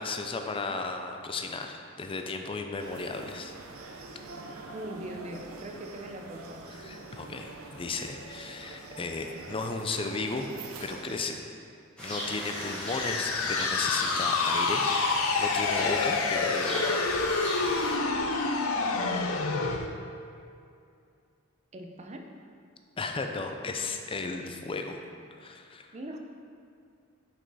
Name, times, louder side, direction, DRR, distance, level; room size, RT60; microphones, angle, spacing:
voice 1, 0.0-3.5 6.8-10.5 10.8-11.4 12.0-17.0 23.0-25.0 25.4-25.9, left 3 dB, 25° left, 5 dB, 0.4 m, -35 dB
sound 1, 2.8-11.2, right 3 dB, 85° right, 0.7 m, -45 dB
voice 2, 4.7-6.8 21.7-22.3 25.9-26.2, right 1 dB, 35° right, 3 dB, 0.5 m, -41 dB
sound 2, 12.0-17.9, left 1 dB, 5° left, 1.7 m, -37 dB
sound 3, 12.4-19.9, left 4 dB, 90° left, 0.5 m, -28 dB
6.1 x 5.6 x 4.0 m, 2.4 s
head